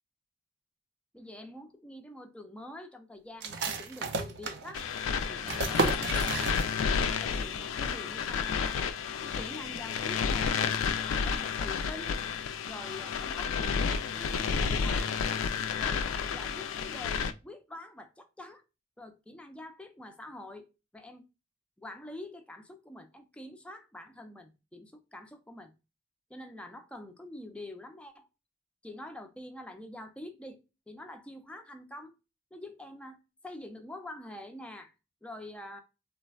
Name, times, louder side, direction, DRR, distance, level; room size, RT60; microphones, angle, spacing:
voice 1, 1.1-4.8 5.3-6.5 7.0-8.8 9.2-10.6 11.1-12.2 12.7-15.2 15.7-18.6 19.0-20.7 20.9-21.2 21.8-25.7 26.3-28.3 28.8-30.6 30.9-32.2 32.5-34.9 35.2-35.8, left 1 dB, 5° left, 0.3 m, -46 dB
sound 1, 3.4-7.1 7.3-7.4 7.9-8.3, right 3 dB, 55° right, 0.4 m, -33 dB
sound 2, 4.7-17.3, left 6 dB, 85° left, 0.3 m, -31 dB
3.3 x 2.0 x 2.2 m
head